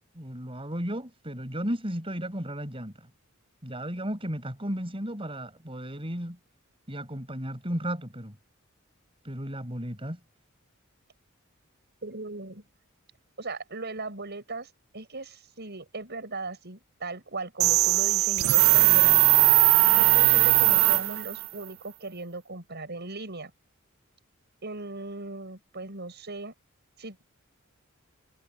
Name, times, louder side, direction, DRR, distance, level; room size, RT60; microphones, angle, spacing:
voice 1, 0.1-2.9 3.6-6.4 6.9-8.4 9.2-10.2, equal, 25° right, 6.4 m, -34 dB
voice 2, 12.0-12.6 13.4-19.3 20.0-23.5 24.6-26.5 27.0-27.2, right 3 dB, 55° right, 6.9 m, -38 dB
sound 1, 17.6-21.5, right 17 dB, 75° right, 0.5 m, -19 dB
head